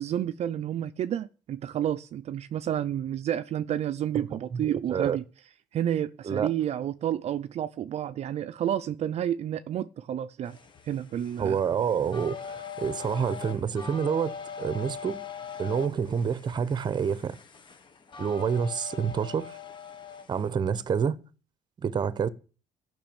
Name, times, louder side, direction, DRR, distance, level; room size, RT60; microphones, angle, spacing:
voice 1, 0.0-5.2 5.7-10.6 10.8-11.6, right 10 dB, 50° right, 0.6 m, -30 dB
voice 2, 4.5-5.2 6.3-6.5 11.4-15.2 15.6-17.4 18.2-19.6 20.3-21.2 21.8-22.3, right 7 dB, 30° right, 0.9 m, -28 dB
sound 1, 10.4-20.5, left 7 dB, 35° left, 1.5 m, -42 dB
13.5 x 6.1 x 8.9 m
cardioid pair, 135°, 14 cm